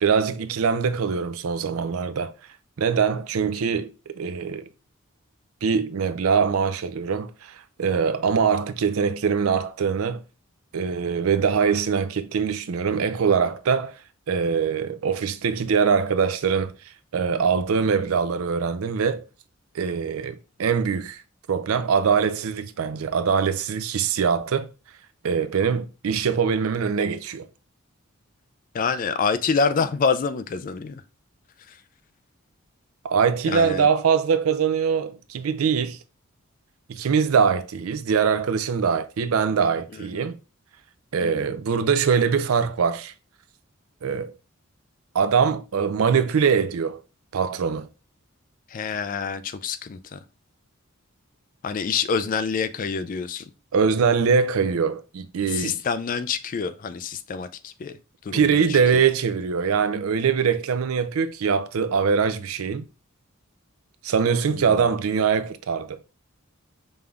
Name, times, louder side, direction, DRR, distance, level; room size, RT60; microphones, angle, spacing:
voice 1, 0.0-2.3 2.8-4.7 5.6-10.2 10.7-14.0 14.3-19.2 19.7-21.2 21.5-24.7 25.2-27.5 33.0-36.0 36.9-40.4 41.1-43.1 44.0-44.3 45.1-47.0 47.3-47.9 53.7-55.8 58.3-62.8 64.0-66.0, right 6 dB, 80° right, 0.4 m, -23 dB
voice 2, 28.7-31.0 31.7-31.8 33.5-33.9 40.1-40.3 41.2-41.5 48.7-50.2 51.6-53.5 55.5-58.0 58.2-59.0 64.5-64.9, left 5 dB, 40° left, 0.3 m, -27 dB
5.3 x 3.3 x 2.3 m
head